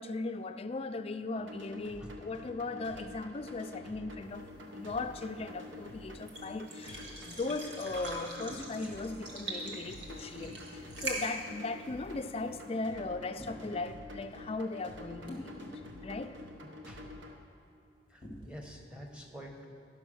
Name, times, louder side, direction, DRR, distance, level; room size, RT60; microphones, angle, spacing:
voice 1, 0.0-4.5 4.7-16.4, left 3 dB, 30° left, 0.4 m, -38 dB
sound 1, 1.3-17.3, left 2 dB, 85° right, 1.0 m, -48 dB
sound 2, 4.2-12.7, right 2 dB, 65° right, 1.7 m, -44 dB
sound 3, 8.5-8.8 10.4-10.6 11.7-11.9 13.4-13.8 15.2-16.1 16.4-16.5 18.2-18.8, left 1 dB, 25° right, 1.9 m, -47 dB
voice 2, 16.6-17.1 18.1-19.7, equal, 5° right, 1.0 m, -48 dB
11.5 x 5.8 x 6.3 m
head